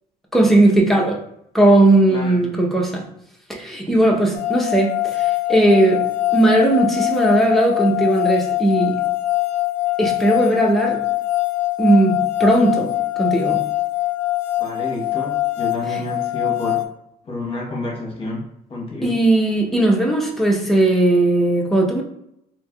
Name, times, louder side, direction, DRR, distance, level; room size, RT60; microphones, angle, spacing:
voice 1, 0.3-1.2 1.5-3.1 3.5-9.0 10.0-11.1 11.8-13.7 15.9-16.0 19.0-22.0, right 1 dB, ahead, -2 dB, 0.6 m, -17 dB
sound 1, 4.3-16.8, left 17 dB, 85° left, 0.4 m, -23 dB
voice 2, 14.6-16.8 17.2-19.2, left 1 dB, 35° left, -2 dB, 0.9 m, -29 dB
3.3 x 2.9 x 2.2 m, 0.76 s
cardioid pair, 110°, 17 cm